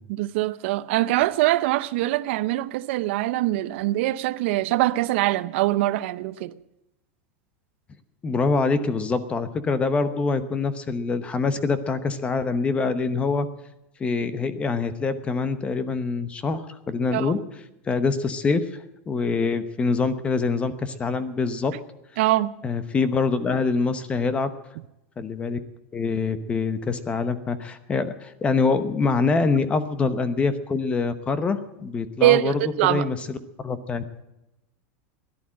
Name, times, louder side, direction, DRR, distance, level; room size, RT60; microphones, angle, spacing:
voice 1, 0.1-6.5 17.1-17.3 22.2-22.5 32.2-33.1, right 16 dB, 60° right, 0.6 m, -23 dB
voice 2, 8.2-13.5 14.0-17.4 17.8-21.7 22.6-24.5 25.2-25.6 25.9-34.0, left 4 dB, 15° left, 0.9 m, -25 dB
17.0 x 11.5 x 7.5 m
supercardioid pair, 160°, 7 cm